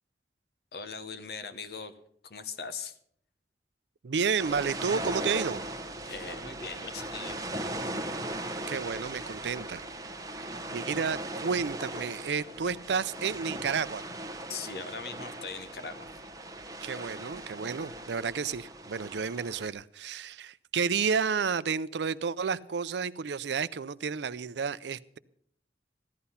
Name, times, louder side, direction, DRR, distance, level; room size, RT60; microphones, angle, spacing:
voice 1, 0.7-1.9 2.2-3.0 6.0-7.4 14.5-16.1, left 5 dB, 65° left, 1.0 m, -40 dB
voice 2, 4.0-5.6 8.7-9.8 10.7-14.0 16.8-25.2, right 5 dB, 85° right, 0.5 m, -31 dB
sound 1, 4.4-19.7, right 1 dB, 20° right, 1.0 m, -38 dB
15.0 x 11.5 x 5.6 m
head